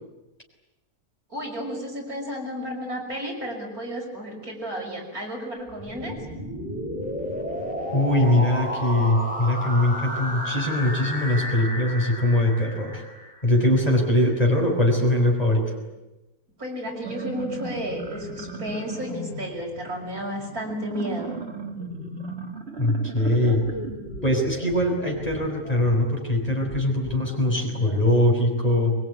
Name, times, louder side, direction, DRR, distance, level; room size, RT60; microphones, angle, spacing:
voice 1, 1.3-6.2 16.6-21.3, equal, 65° right, 0 dB, 6.5 m, -32 dB
sound 1, 5.7-13.6, equal, 5° right, 6.3 m, -32 dB
voice 2, 7.9-13.0 13.4-15.7 22.8-23.6 24.2-29.0, left 1 dB, 25° left, 1 dB, 5.7 m, -22 dB
sound 2, 16.8-24.7, right 3 dB, 40° right, 2.6 m, -36 dB
sound 3, 23.2-28.2, left 2 dB, 70° left, 4.4 m, -39 dB
23.5 x 22.5 x 9.6 m, 1.0 s
omnidirectional pair, 1.6 m